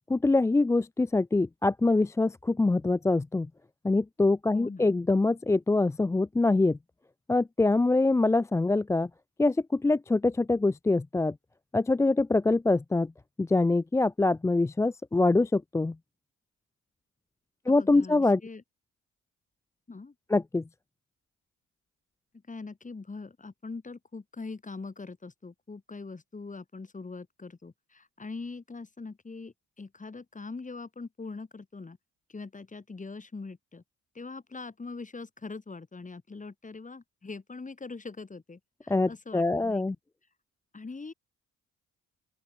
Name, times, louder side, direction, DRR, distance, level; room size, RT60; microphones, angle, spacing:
voice 1, 0.1-3.5 3.8-6.8 7.3-9.1 9.4-11.3 11.7-13.1 13.4-15.9 17.7-18.4 20.3-20.6 38.9-40.0, left 2 dB, 10° left, 0.4 m, -24 dB
voice 2, 4.5-4.9 17.7-18.6 19.9-20.1 22.5-32.0 32.3-33.8 34.1-39.9 40.7-41.1, left 3 dB, 25° left, 7.9 m, -42 dB
open air
cardioid pair, 90°, 30 cm